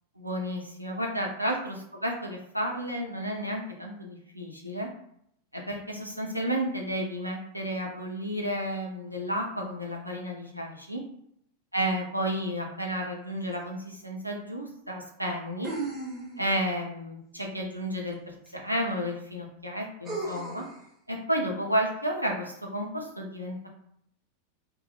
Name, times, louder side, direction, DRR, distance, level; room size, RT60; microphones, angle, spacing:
voice 1, 0.2-4.9 5.5-11.0 11.7-15.7 16.4-20.6 21.1-23.7, equal, 90° right, -1 dB, 0.5 m, -32 dB
sound 1, 13.5-13.6 15.6-16.6 18.5-18.6 20.1-20.8, right 2 dB, 20° right, 0.7 m, -35 dB
2.8 x 2.3 x 2.3 m, 0.71 s
figure-of-eight pair, 90°, 0 cm